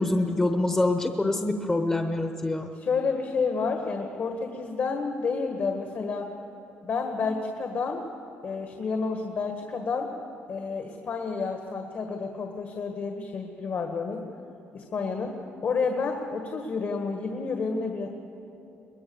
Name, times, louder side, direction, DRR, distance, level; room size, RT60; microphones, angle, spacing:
voice 1, 0.0-2.7, left 2 dB, 15° left, 5 dB, 1.0 m, -25 dB
voice 2, 2.7-6.3 6.8-8.0 8.4-10.1 10.5-14.2 14.7-15.3 15.6-18.1, left 4 dB, 55° left, 3 dB, 1.8 m, -30 dB
23.0 x 20.5 x 7.1 m, 2.9 s
cardioid pair, 115°, 4 cm